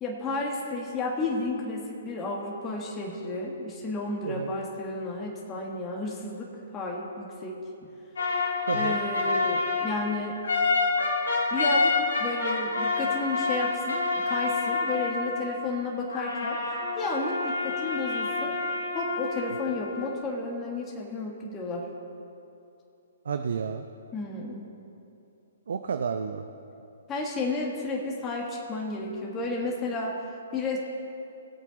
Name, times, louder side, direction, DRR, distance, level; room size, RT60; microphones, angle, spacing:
voice 1, 0.0-7.6 8.7-10.4 11.5-16.6 17.0-18.5 18.9-21.8 24.1-24.7 27.1-30.2 30.5-30.8, left 2 dB, 20° left, -2 dB, 1.6 m, -32 dB
sound 1, 8.2-15.7 16.1-20.2, left 3 dB, 80° left, 2.7 m, -28 dB
voice 2, 8.7-9.0 23.2-23.9 25.7-26.5, right 6 dB, 70° right, 7 dB, 0.6 m, -31 dB
18.0 x 8.4 x 3.9 m, 2.7 s
hypercardioid pair, 135°, 0 cm